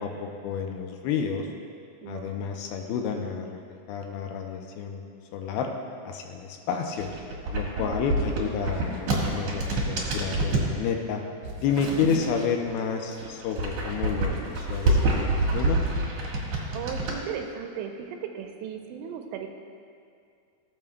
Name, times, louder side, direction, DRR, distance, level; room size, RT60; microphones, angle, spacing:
voice 1, 0.0-1.5 2.1-3.6 3.9-5.0 5.3-5.7 6.1-7.1 7.5-11.2 11.6-15.8, left 6 dB, 80° left, 2 dB, 2.3 m, -30 dB
voice 2, 2.0-2.5 7.8-8.1 16.5-19.5, right 7 dB, 85° right, 4 dB, 2.8 m, -36 dB
sound 1, 6.9-10.7 11.4-12.7 13.1-17.2, right 2 dB, 55° right, 1.8 m, -27 dB
18.5 x 7.2 x 2.2 m, 2.3 s
omnidirectional pair, 5.0 m